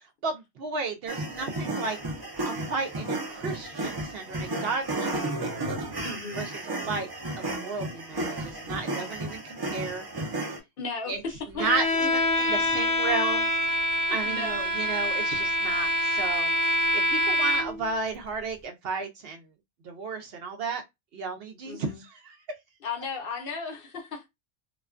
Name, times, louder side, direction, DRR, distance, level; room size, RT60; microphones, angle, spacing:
voice 1, 0.2-2.0 2.4-5.8 6.3-6.5 6.8-7.1 7.4-10.0 11.1-11.2 11.5-13.5 14.1-16.5 16.9-19.4 19.8-20.8 21.1-22.4, right 4 dB, 65° right, 0.7 m, -33 dB
sound 1, 1.1-10.6, right 2 dB, 30° right, 0.4 m, -33 dB
voice 2, 6.0-6.5 10.8-11.7 14.2-14.7 21.6-22.0 22.8-24.3, left 4 dB, 60° left, 0.8 m, -35 dB
Bowed string instrument, 11.6-17.9, left 1 dB, 25° left, 0.5 m, -26 dB
2.4 x 2.2 x 2.4 m
omnidirectional pair, 1.2 m